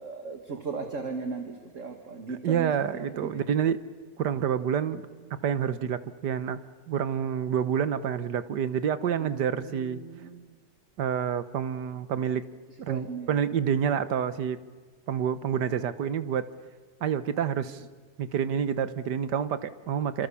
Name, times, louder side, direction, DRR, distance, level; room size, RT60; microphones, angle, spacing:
voice 1, 0.0-3.4 9.2-10.5 12.9-13.4 17.7-17.8, right 4 dB, 45° right, 6 dB, 2.2 m, -37 dB
voice 2, 2.3-3.8 4.2-5.0 5.4-6.6 6.9-10.0 11.0-12.5 12.8-14.6 15.1-16.5 17.0-17.8 18.2-20.3, right 8 dB, 70° right, 13 dB, 1.7 m, -28 dB
28.5 x 26.5 x 7.1 m, 1.5 s
omnidirectional pair, 1.9 m